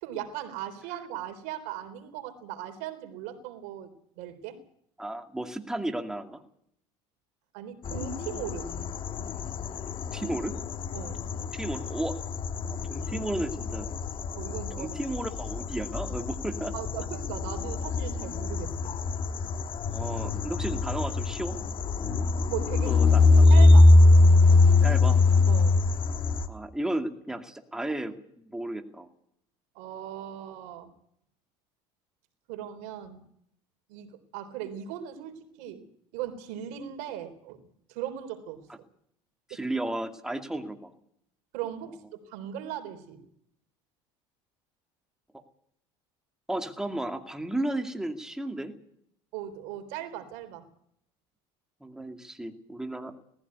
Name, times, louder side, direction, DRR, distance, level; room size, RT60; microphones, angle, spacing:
voice 1, 0.0-3.9 4.2-4.6 7.5-8.7 10.9-11.2 14.3-14.9 16.7-18.9 20.2-20.3 22.5-23.0 23.5-23.9 25.5-25.8 29.8-30.9 32.5-33.2 33.9-35.9 36.1-37.6 37.9-38.6 39.5-39.6 41.5-43.2 49.3-50.7, right 10 dB, 75° right, 9 dB, 3.6 m, -38 dB
voice 2, 5.0-6.4 10.1-10.6 11.5-12.2 12.6-13.9 14.8-16.7 19.9-21.6 22.0-22.2 22.8-23.5 24.8-25.2 26.5-29.1 39.5-40.9 45.3-45.4 46.5-48.7 51.8-53.2, right 1 dB, 5° right, 6 dB, 2.3 m, -34 dB
sound 1, 7.8-26.5, left 3 dB, 45° left, 1.4 m, -23 dB
19.0 x 15.0 x 9.6 m, 0.70 s
supercardioid pair, 110°, 13 cm